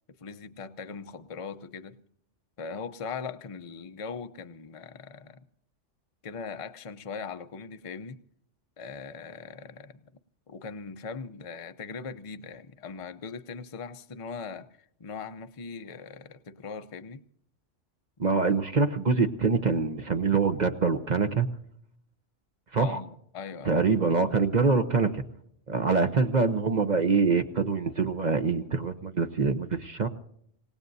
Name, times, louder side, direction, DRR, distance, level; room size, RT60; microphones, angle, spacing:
voice 1, 0.2-2.0 2.6-5.4 6.2-8.2 8.8-10.1 10.5-17.2 22.7-23.8, left 5 dB, 35° left, 0.7 m, -40 dB
voice 2, 18.2-21.5 22.7-23.0 23.6-25.2 25.7-30.1, right 4 dB, 40° right, 0.9 m, -25 dB
27.0 x 18.0 x 2.7 m
omnidirectional pair, 1.3 m